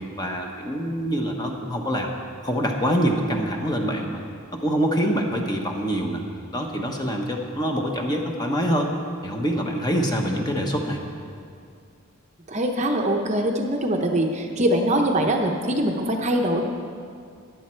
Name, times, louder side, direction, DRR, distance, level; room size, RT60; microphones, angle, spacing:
voice 1, 0.2-2.1 2.4-4.2 4.6-6.2 6.5-8.9 9.2-11.0, equal, 20° left, 1 dB, 1.1 m, -25 dB
voice 2, 12.5-16.6, right 1 dB, 30° right, 2 dB, 0.8 m, -23 dB
15.0 x 10.5 x 4.5 m, 2.3 s
head